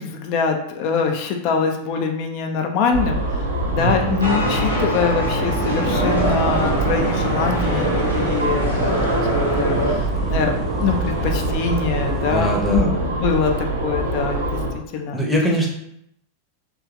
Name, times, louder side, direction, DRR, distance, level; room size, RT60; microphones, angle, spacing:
voice 1, 0.0-3.2 3.6-9.0 9.3-13.5 13.8-14.5 14.9-15.2, left 5 dB, 45° left, 3 dB, 0.4 m, -24 dB
sound 1, 2.9-14.7, right 1 dB, 70° right, 0.6 m, -25 dB
voice 2, 3.8-4.2 10.2-10.3 12.1-12.9 15.1-15.7, right 1 dB, ahead, -2 dB, 0.7 m, -22 dB
sound 2, 4.2-9.9, equal, 90° left, 0.8 m, -23 dB
sound 3, 5.4-12.8, right 4 dB, 25° right, 0.4 m, -28 dB
3.0 x 2.3 x 2.5 m, 0.74 s
figure-of-eight pair, 90°, 0 cm